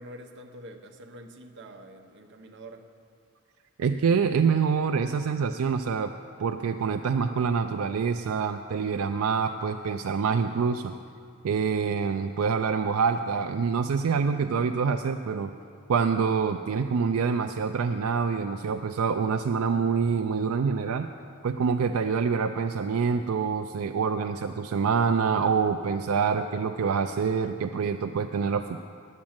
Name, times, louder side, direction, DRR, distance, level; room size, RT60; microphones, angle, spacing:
voice 1, 0.0-2.9, right 1 dB, 55° right, 4 dB, 0.9 m, -46 dB
voice 2, 3.8-6.1 6.4-10.9 11.4-15.5 15.9-21.1 21.4-28.8, right 5 dB, 80° right, 7 dB, 0.4 m, -26 dB
10.5 x 7.5 x 8.8 m, 2.4 s
head